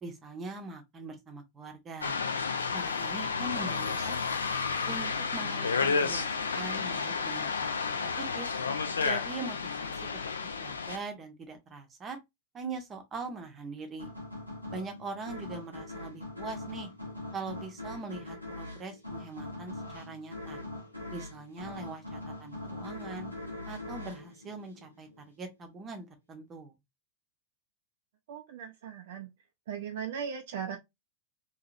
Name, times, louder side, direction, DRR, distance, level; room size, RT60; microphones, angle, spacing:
voice 1, 0.0-2.2 2.7-4.5 4.9-8.5 9.0-9.9 10.6-12.2 12.5-14.1 14.7-16.9 17.3-20.6 21.1-23.3 23.7-26.7, right 3 dB, 25° right, 0.8 m, -42 dB
sound 1, 2.0-11.0, left 5 dB, 75° left, 0.4 m, -31 dB
voice 2, 3.6-4.1 28.3-29.3 29.7-30.8, right 7 dB, 55° right, 0.5 m, -38 dB
sound 2, 14.0-25.3, left 2 dB, 90° left, 0.9 m, -42 dB
2.8 x 2.7 x 2.5 m
figure-of-eight pair, 90°, 0 cm